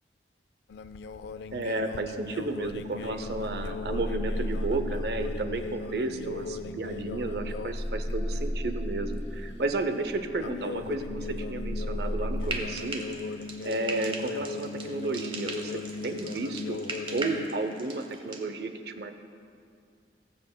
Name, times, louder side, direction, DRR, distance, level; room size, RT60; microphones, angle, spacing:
sound 1, 0.7-7.8 8.1-8.5 10.4-17.5, left 4 dB, 75° left, 0.3 m, -39 dB
voice 1, 1.5-13.0 13.6-15.7 16.0-16.8 17.1-19.1, right 2 dB, 65° right, 8 dB, 0.6 m, -32 dB
sound 2, 2.7-12.6, equal, 15° left, 0.9 m, -35 dB
Frying (food), 12.4-18.4, right 2 dB, 30° right, 0.8 m, -39 dB
18.5 x 7.6 x 2.2 m, 2.3 s
head